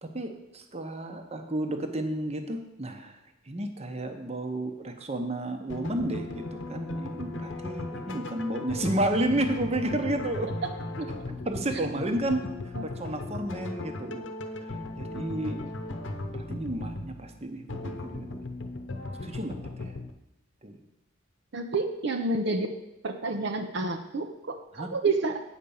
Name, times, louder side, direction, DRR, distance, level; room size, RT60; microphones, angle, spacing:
voice 1, 0.0-3.2 3.5-10.5 11.0-11.1 11.4-14.2 14.6-15.6 16.3-18.5 19.2-19.9 20.6-20.8 24.8-24.9, right 1 dB, 30° right, 6 dB, 0.9 m, -32 dB
sound 1, 5.7-20.1, left 2 dB, 65° left, 0.8 m, -37 dB
voice 2, 21.5-22.7 23.0-25.4, right 3 dB, 60° right, 4 dB, 0.7 m, -29 dB
8.9 x 5.2 x 7.0 m, 0.91 s
head